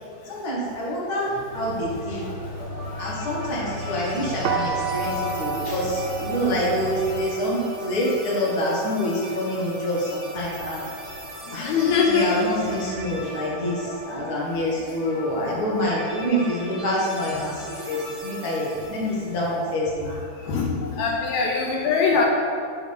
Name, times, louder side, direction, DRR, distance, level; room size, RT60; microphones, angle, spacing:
voice 1, 0.2-2.3 3.0-11.1 11.5-11.7 12.1-20.2, equal, 40° left, -5 dB, 1.5 m, -26 dB
sound 1, 1.5-7.2, left 1 dB, 75° left, 3.2 m, -35 dB
sound 2, 2.6-19.5, equal, 55° right, 0.8 m, -39 dB
sound 3, 4.4-10.3, right 5 dB, 85° right, 2.5 m, -32 dB
voice 2, 11.6-12.4 19.1-19.2 20.4-22.2, left 5 dB, 90° left, 0 dB, 1.6 m, -22 dB
11.0 x 3.7 x 5.3 m, 2.5 s
omnidirectional pair, 4.0 m